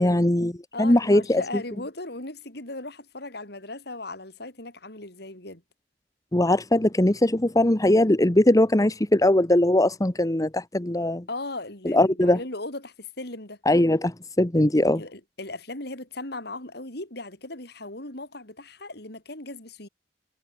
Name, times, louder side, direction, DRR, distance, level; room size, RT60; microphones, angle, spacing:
voice 1, 0.0-0.5 0.8-1.4 6.3-11.3 11.8-12.4 13.7-15.0, left 1 dB, 20° left, 1.2 m, -20 dB
voice 2, 0.7-5.6 11.3-13.6 14.9-19.9, left 2 dB, 65° left, 7.6 m, -37 dB
head